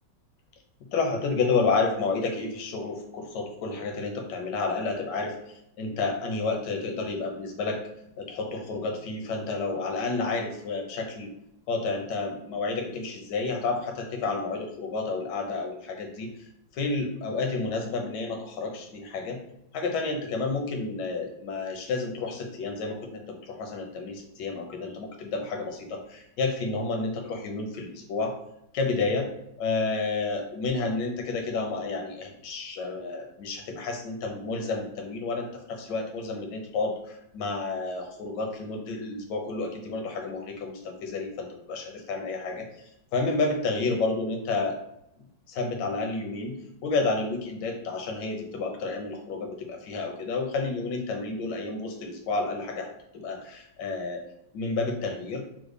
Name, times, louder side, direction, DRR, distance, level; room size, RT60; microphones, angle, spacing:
voice 1, 0.9-7.8 8.2-11.3 11.7-16.5 16.7-19.4 19.7-28.4 28.7-29.3 29.6-42.7 43.1-44.8 45.5-46.6 46.8-54.2 54.5-55.4, left 3 dB, 90° left, 3 dB, 1.3 m, -30 dB
3.6 x 2.1 x 3.2 m, 0.80 s
omnidirectional pair, 1.8 m